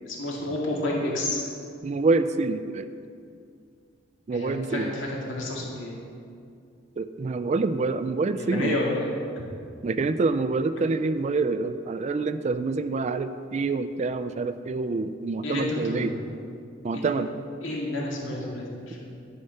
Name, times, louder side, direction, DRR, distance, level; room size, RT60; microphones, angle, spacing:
voice 1, 0.1-1.4 4.3-5.9 8.3-9.4 15.4-16.2 16.9-17.1 17.6-19.1, left 1 dB, 75° left, -3 dB, 2.1 m, -30 dB
voice 2, 1.8-2.9 4.3-4.9 7.0-8.8 9.8-16.1 16.8-17.3, right 3 dB, 35° right, 12 dB, 0.3 m, -26 dB
11.5 x 5.7 x 6.6 m, 2.4 s
head